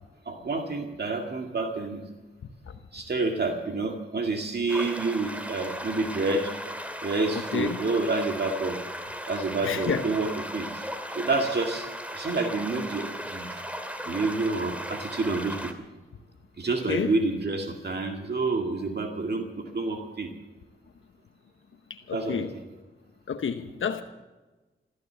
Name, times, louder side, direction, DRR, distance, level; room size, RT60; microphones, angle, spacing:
voice 1, 0.3-2.0 2.9-6.5 7.0-8.8 9.3-10.9 11.1-11.9 12.1-13.6 14.1-15.7 16.6-20.3 22.1-22.4, right 3 dB, 55° right, 2.1 m, -28 dB
sound 1, 4.7-15.7, equal, 5° right, 2.2 m, -37 dB
voice 2, 9.6-10.0 16.9-17.1 21.9-22.5 23.3-24.0, left 7 dB, 75° left, 1.1 m, -29 dB
14.5 x 14.0 x 7.0 m
cardioid pair, 70°, 21 cm